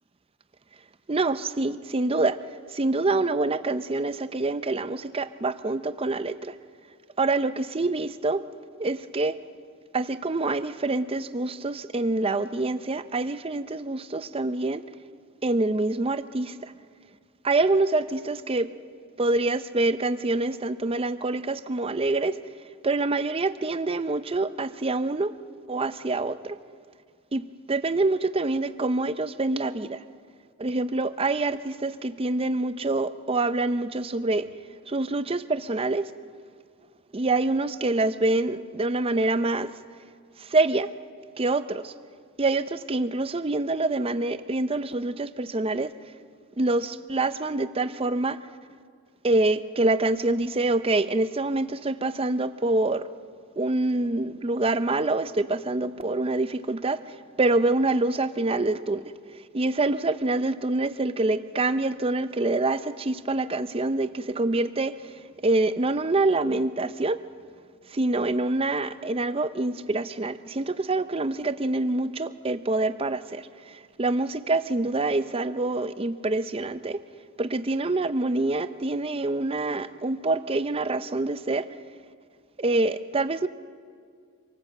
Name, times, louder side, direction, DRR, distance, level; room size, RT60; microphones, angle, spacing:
voice 1, 1.1-2.4 2.7-6.5 7.2-8.5 8.8-9.4 9.9-14.8 15.4-16.7 17.4-18.7 19.2-22.4 22.8-25.4 25.7-26.6 27.3-30.0 30.6-34.5 34.9-36.1 37.1-39.7 40.4-40.9 41.4-41.9 42.4-45.9 46.6-48.5 49.2-53.1 53.6-59.1 59.5-65.1 65.4-67.2 67.9-77.0 77.4-81.7 82.6-83.5, right 2 dB, 25° right, 12 dB, 0.6 m, -26 dB
25.5 x 18.5 x 7.7 m, 2.1 s
head